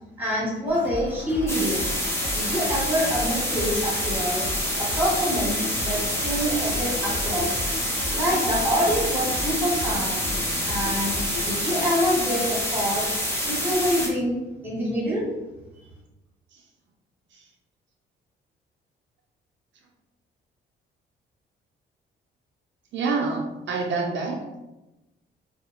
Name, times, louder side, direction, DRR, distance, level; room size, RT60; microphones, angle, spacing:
voice 1, 0.2-1.9 2.3-4.4 4.8-7.6 8.1-10.2 10.6-11.1 11.4-13.0 13.4-15.2, equal, 10° right, -5 dB, 1.3 m, -26 dB
sound 1, 0.7-12.7, left 2 dB, 80° left, 0.6 m, -35 dB
sound 2, 1.5-14.1, equal, 10° left, 0.8 m, -27 dB
voice 2, 22.9-24.4, right 4 dB, 65° right, 0 dB, 0.4 m, -27 dB
2.4 x 2.4 x 2.8 m, 1.0 s
cardioid pair, 90°, 20 cm